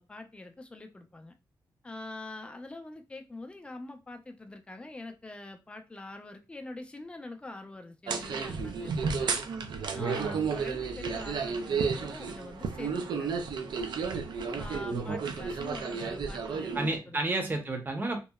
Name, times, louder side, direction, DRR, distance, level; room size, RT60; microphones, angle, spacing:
voice 1, 0.0-1.3 1.8-9.3 9.9-13.4 14.6-17.3, left 2 dB, 15° left, 6 dB, 0.4 m, -45 dB
sound 1, 8.1-17.0, right 5 dB, 70° right, 0.4 m, -32 dB
voice 2, 9.9-10.5 14.9-15.2 16.7-18.2, right 2 dB, 25° right, 3 dB, 0.6 m, -32 dB
2.8 x 2.0 x 2.2 m, 0.26 s
wide cardioid pair, 115°, 8 cm